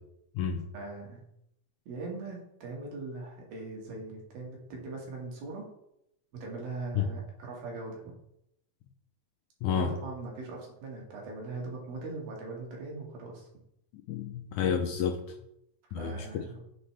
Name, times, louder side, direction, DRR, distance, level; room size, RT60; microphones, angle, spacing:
voice 1, 0.7-1.2 1.9-5.7 6.3-8.1 9.7-13.5 16.0-16.6, right 3 dB, 85° right, -2 dB, 3.9 m, -40 dB
voice 2, 14.1-15.2 15.9-16.4, left 7 dB, 80° left, 3 dB, 1.8 m, -30 dB
8.7 x 8.1 x 3.4 m, 0.80 s
omnidirectional pair, 4.1 m